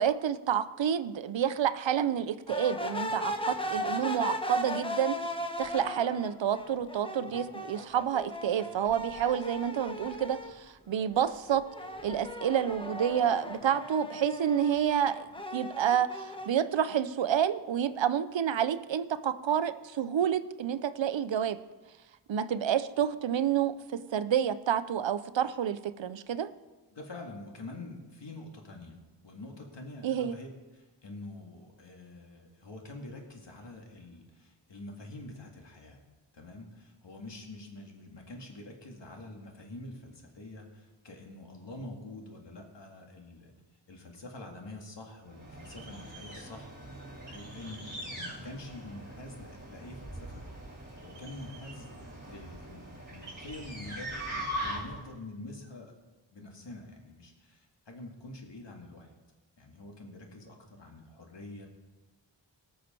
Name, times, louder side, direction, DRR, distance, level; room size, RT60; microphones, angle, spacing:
voice 1, 0.0-5.2 5.6-11.7 12.0-15.3 15.5-21.6 22.3-26.5 30.0-30.4, right 9 dB, 80° right, 14 dB, 0.7 m, -29 dB
sound 1, 2.5-10.6 11.0-16.5, left 1 dB, 10° left, 1.1 m, -37 dB
voice 2, 26.9-29.0 29.2-30.5 30.7-36.0 36.3-43.5 43.9-50.4 51.0-51.9 52.3-56.0 56.3-59.1 59.6-61.7, left 2 dB, 70° left, 2 dB, 2.2 m, -46 dB
sound 2, 45.3-55.1, right 1 dB, 25° right, 4.8 m, -41 dB
19.0 x 6.6 x 4.4 m, 1.2 s
cardioid pair, 50°, 44 cm